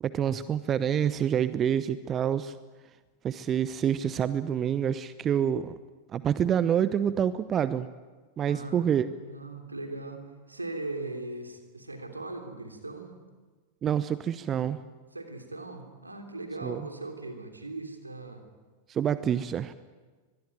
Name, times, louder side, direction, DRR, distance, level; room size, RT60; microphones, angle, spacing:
voice 1, 0.0-2.5 3.2-5.8 6.1-7.9 8.4-9.1 13.8-14.8 16.6-16.8 18.9-19.7, right 9 dB, 25° right, 15 dB, 0.8 m, -27 dB
voice 2, 8.4-13.2 15.1-18.4, right 2 dB, 80° right, 5 dB, 3.2 m, -39 dB
24.5 x 21.5 x 9.3 m, 1.4 s
figure-of-eight pair, 90°, 0 cm